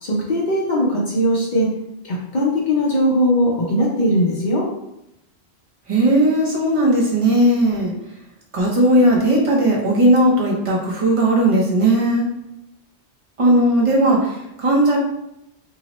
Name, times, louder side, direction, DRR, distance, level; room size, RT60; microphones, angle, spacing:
voice 1, 0.0-1.7 2.0-4.7, equal, 50° left, -4 dB, 0.7 m, -19 dB
voice 2, 5.9-7.9 8.5-12.3 13.4-15.0, right 1 dB, 35° right, -4 dB, 0.6 m, -17 dB
2.8 x 2.0 x 2.9 m, 0.85 s
omnidirectional pair, 1.1 m